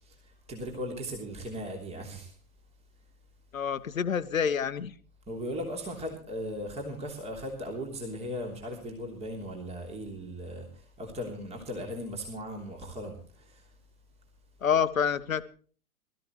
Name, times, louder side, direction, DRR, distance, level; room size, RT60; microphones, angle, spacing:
voice 1, 0.0-2.3 5.3-13.7, equal, 15° right, 2 dB, 3.2 m, -38 dB
voice 2, 3.5-4.9 14.6-15.4, left 7 dB, 70° left, 13 dB, 1.1 m, -27 dB
22.0 x 14.0 x 3.2 m, 0.41 s
figure-of-eight pair, 110°, 43 cm